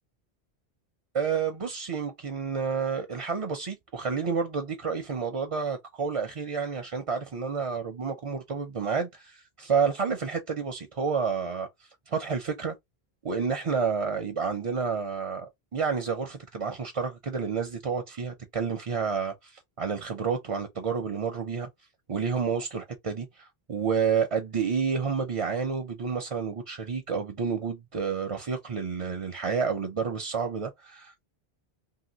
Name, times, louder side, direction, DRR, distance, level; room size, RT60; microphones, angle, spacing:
voice 1, 1.1-11.7 12.1-12.7 13.2-21.7 22.1-31.3, right 6 dB, 45° right, 0.5 m, -30 dB
2.8 x 2.8 x 2.8 m
omnidirectional pair, 1.1 m